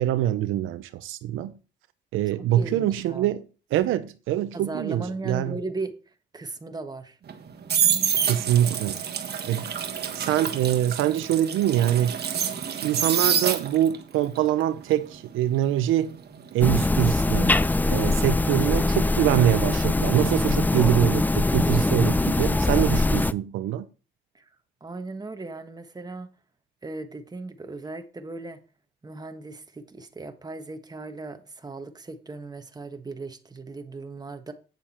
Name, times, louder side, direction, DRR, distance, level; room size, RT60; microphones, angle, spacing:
voice 1, 0.0-1.5 2.1-5.6 8.2-9.0 9.5-9.7 10.1-12.1 12.8-16.2 16.5-17.6 17.9-23.9, right 12 dB, 85° right, 0.6 m, -24 dB
voice 2, 2.2-3.3 4.5-5.9 6.3-7.2 24.3-24.5 24.8-26.3 26.8-28.6 29.0-34.5, right 3 dB, 20° right, 1.4 m, -37 dB
sound 1, 7.3-14.0 14.4-17.3 17.5-17.9, right 8 dB, 55° right, 1.4 m, -27 dB
sound 2, 16.6-23.3, left 2 dB, 10° left, 0.3 m, -22 dB
9.1 x 7.0 x 4.3 m
cardioid pair, 90°, 20 cm